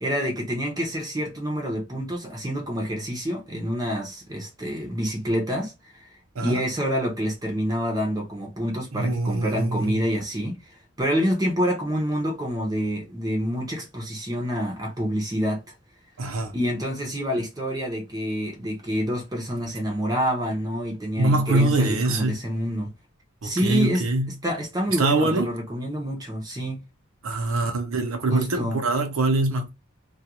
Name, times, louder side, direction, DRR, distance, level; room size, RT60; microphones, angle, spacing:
voice 1, 0.0-5.7 6.0-6.1 6.4-10.6 11.0-15.6 16.5-22.9 23.4-24.0 24.4-26.8 28.3-28.8, equal, 15° right, 0.6 m, -27 dB
voice 2, 8.9-10.0 16.2-16.5 21.2-22.3 23.4-24.3 24.9-25.5 27.2-29.7, right 2 dB, 70° right, 0.6 m, -24 dB
2.3 x 2.2 x 2.8 m
head